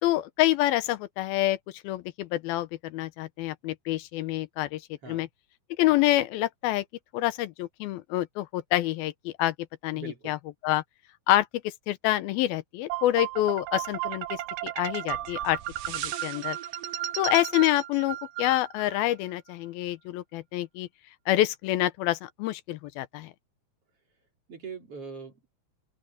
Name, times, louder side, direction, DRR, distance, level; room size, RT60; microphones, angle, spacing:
voice 1, 0.0-1.6 1.8-4.8 5.1-5.3 5.8-6.9 7.1-9.5 9.8-10.4 10.6-10.8 11.3-15.6 15.9-16.6 17.2-20.9 21.3-23.3, left 15 dB, 80° left, 2.6 m, -27 dB
voice 2, 9.9-10.3 24.5-25.5, right 6 dB, 40° right, 4.1 m, -42 dB
sound 1, 12.9-19.0, right 13 dB, 70° right, 2.5 m, -34 dB
open air
omnidirectional pair, 4.3 m